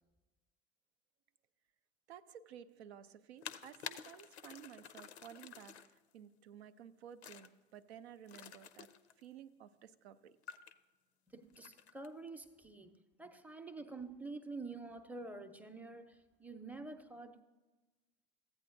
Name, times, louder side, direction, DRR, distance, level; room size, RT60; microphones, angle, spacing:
voice 1, 2.1-8.9 9.2-10.4, right 9 dB, 80° right, 0.5 m, -54 dB
sound 1, 3.4-6.0 7.2-7.5 8.3-9.2 10.4-10.7 11.5-12.1, left 8 dB, 90° left, 0.5 m, -50 dB
voice 2, 11.3-17.4, right 3 dB, 5° right, 0.6 m, -48 dB
15.0 x 8.6 x 2.5 m
hypercardioid pair, 70°, 32 cm